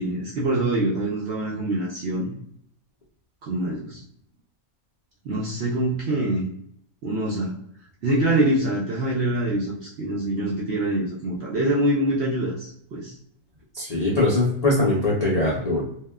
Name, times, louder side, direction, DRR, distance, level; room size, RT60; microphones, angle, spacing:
voice 1, 0.0-2.4 3.4-4.0 5.2-6.5 7.0-7.5 8.0-13.1, right 1 dB, 65° right, -4 dB, 0.6 m, -25 dB
voice 2, 13.7-15.8, left 2 dB, 70° left, -5 dB, 0.3 m, -21 dB
2.9 x 2.1 x 2.2 m, 0.71 s
omnidirectional pair, 1.6 m